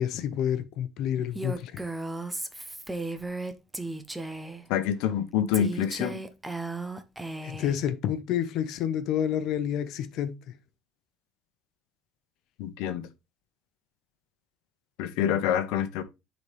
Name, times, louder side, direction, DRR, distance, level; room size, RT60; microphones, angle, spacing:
voice 1, 0.0-1.8 7.4-10.4, left 9 dB, 50° left, 0.9 m, -29 dB
Female speech woman speaking, 1.3-4.6 5.5-7.8, right 2 dB, 5° right, 0.5 m, -35 dB
voice 2, 4.7-6.2 12.6-13.1 15.0-16.0, left 9 dB, 85° left, 1.0 m, -27 dB
9.8 x 4.1 x 3.4 m
cardioid pair, 175°, 0 cm